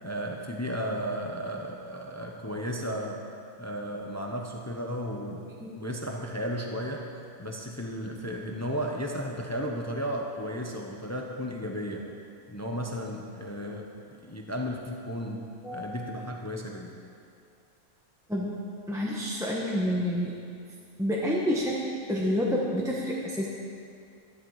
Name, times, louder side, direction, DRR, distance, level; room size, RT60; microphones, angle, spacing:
voice 1, 0.0-3.2 3.6-5.5 5.8-7.1 7.4-12.2 12.5-15.4 15.7-17.0, equal, 15° left, 1 dB, 0.7 m, -34 dB
voice 2, 15.6-16.0 18.3-18.6 18.9-20.3 21.0-23.5, equal, ahead, -4 dB, 1.0 m, -28 dB
13.0 x 11.5 x 4.8 m, 2.4 s
omnidirectional pair, 1.5 m